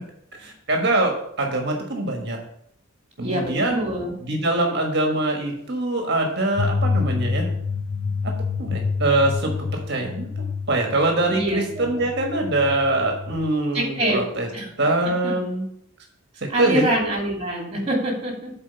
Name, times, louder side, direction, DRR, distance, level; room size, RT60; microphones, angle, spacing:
voice 1, 0.3-2.4 3.2-3.9 4.2-7.5 8.6-14.5 14.8-15.7 16.4-16.8, right 2 dB, 50° right, 2 dB, 1.4 m, -23 dB
voice 2, 3.2-4.1 11.3-12.0 13.7-14.2 14.5-14.7 15.2-15.3 16.5-18.5, right 1 dB, 30° right, -1 dB, 2.5 m, -25 dB
sound 1, 6.6-13.4, left 4 dB, 65° left, 1.5 m, -28 dB
7.4 x 4.5 x 5.7 m, 0.71 s
head